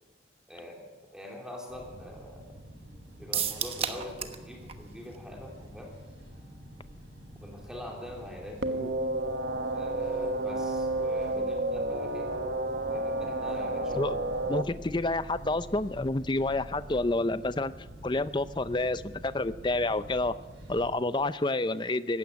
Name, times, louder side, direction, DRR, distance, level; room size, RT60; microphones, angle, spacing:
voice 1, 0.5-2.5 3.2-5.9 7.4-8.9 9.7-12.3 12.9-14.3, left 1 dB, 5° right, 0 dB, 3.3 m, -44 dB
sound 1, 1.7-20.9, equal, 80° right, 6.9 m, -47 dB
sound 2, 3.3-4.4 4.7-4.8 5.1-5.2, right 8 dB, 30° right, 1.2 m, -31 dB
sound 3, 8.6-14.6, right 2 dB, 65° right, 1.3 m, -31 dB
voice 2, 14.5-17.7 18.0-20.3 20.7-22.2, left 2 dB, 25° left, 14 dB, 0.6 m, -29 dB
19.0 x 16.0 x 9.4 m, 1.3 s
head